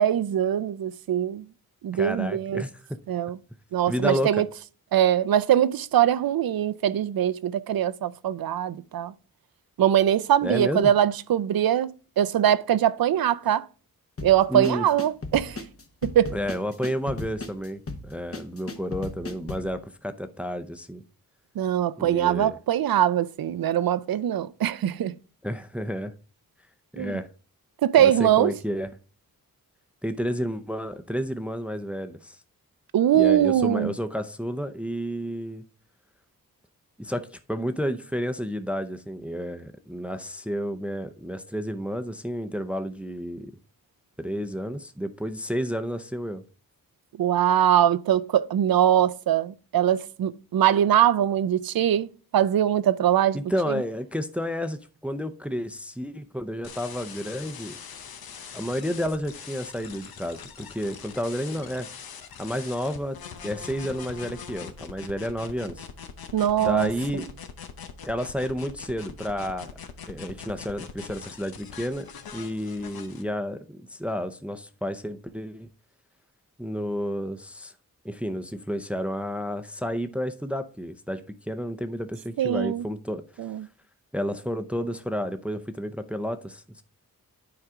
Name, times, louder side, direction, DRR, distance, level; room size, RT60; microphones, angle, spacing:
voice 1, 0.0-1.5 1.8-2.6 3.1-3.4 3.7-4.5 4.9-9.1 9.8-13.7 14.2-15.6 16.0-16.4 21.6-25.2 27.0-27.2 27.8-28.5 32.9-33.9 47.2-53.4 66.3-66.9 82.4-82.9 83.4-83.7, right 10 dB, 80° right, 0.5 m, -22 dB
voice 2, 1.9-3.0 3.9-4.3 10.4-10.9 13.5-13.6 14.5-14.9 16.3-21.0 22.0-22.6 25.4-26.1 26.9-27.3 28.0-28.9 30.0-32.4 33.1-35.6 37.0-43.5 44.2-46.4 53.3-57.8 58.5-61.9 62.4-63.2 63.4-65.9 66.6-67.3 68.0-69.7 70.1-72.1 72.3-75.7 76.6-77.7 78.0-83.2 84.1-86.8, equal, 5° right, 0.5 m, -31 dB
sound 1, 14.2-19.7, left 2 dB, 40° left, 1.0 m, -36 dB
sound 2, 56.6-73.2, left 7 dB, 90° left, 0.8 m, -42 dB
9.4 x 4.8 x 3.6 m
wide cardioid pair, 75°, 35 cm